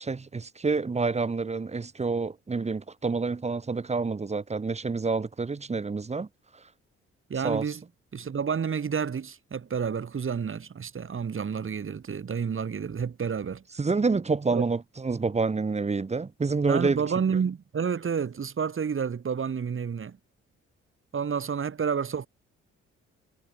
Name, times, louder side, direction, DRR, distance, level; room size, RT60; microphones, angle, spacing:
voice 1, 0.0-6.3 7.4-7.6 13.8-17.0, right 4 dB, 20° right, 0.8 m, -28 dB
voice 2, 7.3-7.8 8.1-13.6 14.5-14.6 16.7-20.2 21.1-22.3, right 6 dB, 40° right, 1.6 m, -30 dB
hypercardioid pair, 45°, 32 cm